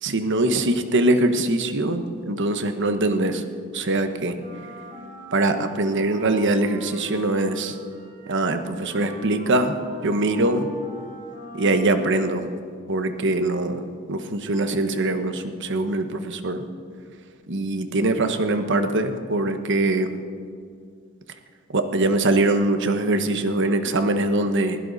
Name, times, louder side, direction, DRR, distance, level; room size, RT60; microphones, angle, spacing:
voice 1, 0.0-3.4 3.7-4.4 5.3-7.8 8.3-9.8 10.0-10.7 11.5-12.4 12.9-16.6 17.5-20.1 21.7-24.8, right 2 dB, 60° right, 8 dB, 1.2 m, -22 dB
Wind instrument woodwind instrument, 4.4-12.5, equal, 20° right, 4.5 m, -41 dB
21.0 x 16.0 x 4.2 m, 2.2 s
head